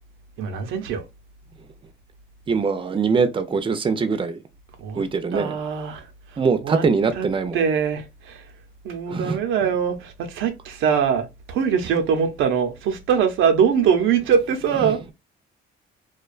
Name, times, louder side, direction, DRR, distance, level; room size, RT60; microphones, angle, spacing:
voice 1, 0.4-1.0 4.8-5.1 5.3-6.8 7.2-7.3 7.5-8.5 8.8-15.1, right 7 dB, 90° right, 0.6 m, -22 dB
voice 2, 2.5-4.4 5.0-5.6 6.4-7.6 9.1-9.4 14.8-15.0, right 5 dB, 25° right, 0.4 m, -22 dB
2.4 x 2.2 x 2.3 m
cardioid pair, 90°, 20 cm